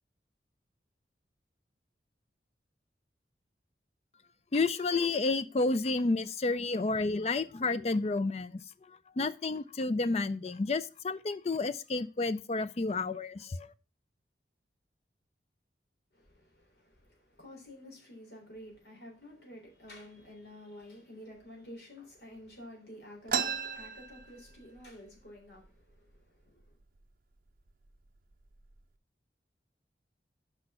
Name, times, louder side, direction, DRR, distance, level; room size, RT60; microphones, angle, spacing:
voice 1, 4.5-8.6 9.2-13.7, left 3 dB, 35° left, 0.4 m, -30 dB
voice 2, 16.1-26.8, left 1 dB, 70° left, 3.4 m, -51 dB
sound 1, 23.3-24.9 25.2-25.3 25.6-26.2 26.8-27.0 27.7-27.9 28.3-28.8, right 7 dB, 50° right, 0.6 m, -35 dB
6.1 x 5.5 x 5.5 m
head